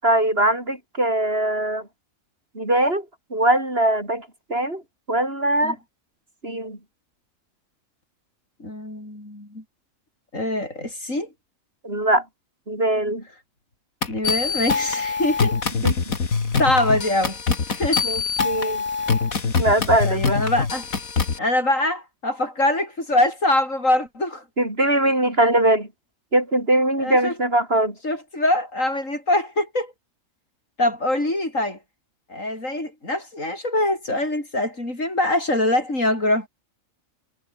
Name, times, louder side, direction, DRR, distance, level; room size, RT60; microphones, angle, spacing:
voice 1, 0.0-1.9 2.5-3.1 3.3-4.8 5.1-5.8 6.4-6.8 11.8-12.2 12.7-13.2 15.8-16.1 18.0-18.8 19.6-20.4 24.6-25.9 26.3-28.0, right 1 dB, 45° right, 7.6 m, -21 dB
voice 2, 8.6-9.6 10.3-11.3 14.1-15.5 16.6-17.4 17.7-18.1 20.0-20.9 21.4-24.4 27.0-27.3 28.0-29.9 30.8-31.8 32.3-36.5, left 1 dB, 70° left, 8.0 m, -23 dB
sound 1, 14.0-21.4, left 5 dB, 85° left, 2.7 m, -24 dB
omnidirectional pair, 1.4 m